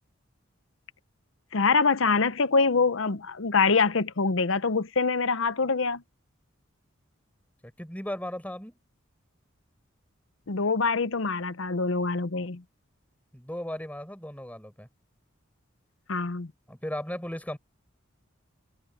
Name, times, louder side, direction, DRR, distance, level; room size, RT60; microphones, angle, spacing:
voice 1, 1.5-6.0 10.5-12.6 16.1-16.5, left 4 dB, 65° left, 0.8 m, -25 dB
voice 2, 7.6-8.8 13.3-14.9 16.7-17.6, left 1 dB, 5° left, 4.9 m, -36 dB
head